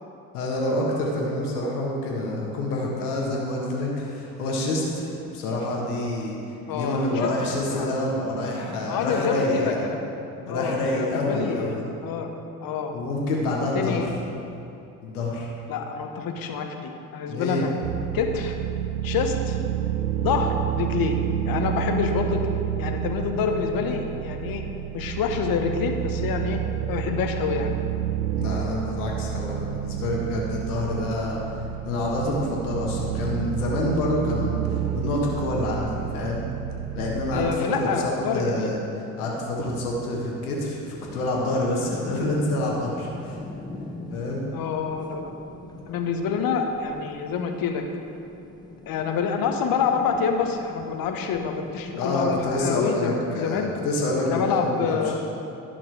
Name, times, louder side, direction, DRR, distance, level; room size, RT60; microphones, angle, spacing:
voice 1, 0.3-6.4 6.7-9.8 10.4-11.8 12.9-14.1 15.0-15.5 17.3-17.6 28.4-31.4 31.8-36.5 36.9-38.8 39.2-43.4 44.1-44.4 51.9-55.0, left 1 dB, 80° left, -2 dB, 1.6 m, -27 dB
voice 2, 6.7-7.9 8.9-10.1 10.5-11.8 12.0-12.3 12.6-12.9 13.7-14.1 15.7-17.7 18.1-18.6 19.0-19.6 20.2-21.2 21.4-22.4 22.8-24.6 24.9-26.6 26.9-27.7 37.3-38.7 44.5-45.3 45.9-47.8 48.9-53.7 54.2-55.2, left 6 dB, 50° left, 5 dB, 1.1 m, -27 dB
sound 1, 17.8-37.6, right 11 dB, 75° right, 0.6 m, -29 dB
sound 2, 41.0-53.0, left 2 dB, 10° left, 0.8 m, -42 dB
11.5 x 5.9 x 4.7 m, 2.7 s
hypercardioid pair, 60°, 44 cm